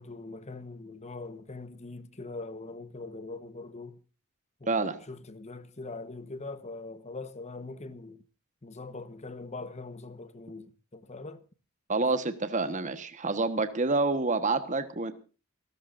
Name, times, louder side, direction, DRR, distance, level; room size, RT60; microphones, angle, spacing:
voice 1, 0.0-4.0 4.6-8.2 8.6-11.4, left 3 dB, 30° left, 1.1 m, -42 dB
voice 2, 4.7-5.0 11.9-15.1, right 3 dB, 35° right, 1.3 m, -28 dB
28.5 x 13.5 x 2.6 m
head